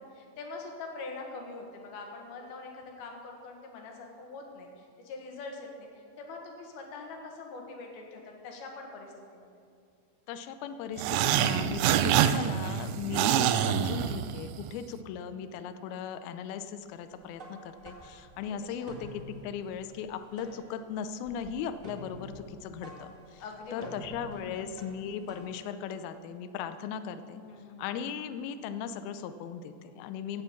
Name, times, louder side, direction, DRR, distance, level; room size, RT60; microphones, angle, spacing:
voice 1, 0.0-5.9 6.2-9.5 15.3-15.5 18.8-18.9 23.4-24.0 24.3-24.8 27.4-28.0, left 3 dB, 65° left, 1 dB, 3.2 m, -44 dB
voice 2, 10.3-23.4 23.7-27.4 27.8-30.4, left 7 dB, 90° left, 10 dB, 2.1 m, -38 dB
sound 1, 11.0-14.7, right 10 dB, 85° right, 2.8 m, -26 dB
sound 2, 17.2-25.5, right 2 dB, 65° right, 0.7 m, -49 dB
16.5 x 6.9 x 7.1 m, 2.4 s
omnidirectional pair, 5.0 m